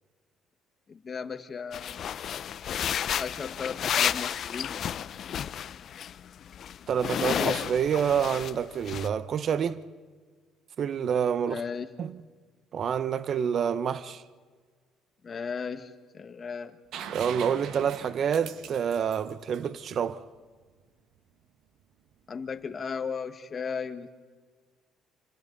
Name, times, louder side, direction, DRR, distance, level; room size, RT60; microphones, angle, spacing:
voice 1, 0.9-2.2 3.2-4.8 11.5-11.9 15.2-16.7 22.3-24.1, left 6 dB, 35° left, 1.6 m, -36 dB
sound 1, 1.7-6.1 6.4-8.6 8.9-9.1, left 9 dB, 55° left, 0.6 m, -31 dB
voice 2, 6.9-9.8 10.8-11.6 12.0-12.1 12.7-14.2 17.1-20.3, right 8 dB, 50° right, 0.8 m, -28 dB
sound 2, 16.9-20.6 22.5-22.6, right 8 dB, 70° right, 1.3 m, -42 dB
28.5 x 26.5 x 4.0 m
cardioid pair, 105°, 0 cm